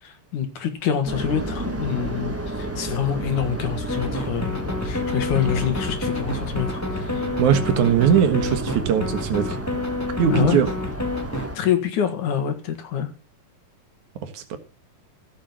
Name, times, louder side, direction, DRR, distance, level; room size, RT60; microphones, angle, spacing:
voice 1, 0.0-7.3 10.3-10.6 11.5-13.1, left 8 dB, 80° left, 3.3 m, -26 dB
sound 1, 1.0-11.6, right 1 dB, 15° right, 0.4 m, -31 dB
sound 2, 3.9-11.5, left 2 dB, 5° left, 1.4 m, -29 dB
voice 2, 7.4-9.6 10.2-10.7 14.2-14.6, right 8 dB, 75° right, 2.9 m, -20 dB
16.0 x 6.3 x 7.4 m
omnidirectional pair, 3.5 m